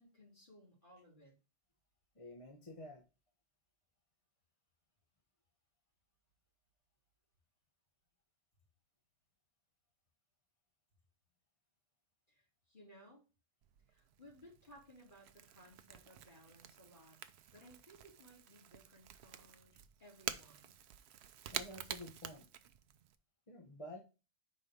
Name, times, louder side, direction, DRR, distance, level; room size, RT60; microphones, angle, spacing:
voice 1, 0.0-1.3 12.3-13.2 13.9-17.2 17.5-20.7, equal, 45° left, -4 dB, 3.7 m, -61 dB
voice 2, 2.1-3.0 21.5-22.5 23.5-24.0, left 1 dB, 30° left, 1 dB, 1.0 m, -50 dB
Crackle / Crack, 13.6-23.1, right 9 dB, 75° right, 0.8 m, -49 dB
5.4 x 4.2 x 5.1 m, 0.31 s
omnidirectional pair, 1.1 m